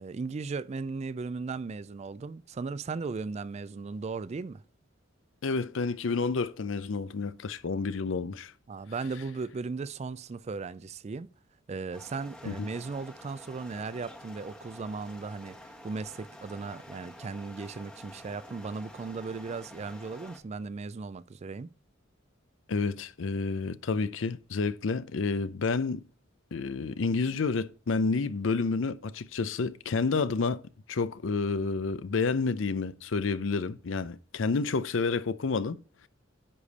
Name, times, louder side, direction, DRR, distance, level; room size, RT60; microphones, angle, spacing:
voice 1, 0.0-4.6 8.7-11.3 11.7-21.7, right 4 dB, 35° right, 0.4 m, -37 dB
voice 2, 5.4-8.5 12.5-12.6 22.7-26.0 26.5-30.6 30.9-35.8, left 4 dB, 70° left, 0.5 m, -29 dB
sound 1, 11.9-20.4, left 1 dB, 5° left, 1.1 m, -49 dB
9.9 x 5.1 x 4.1 m
head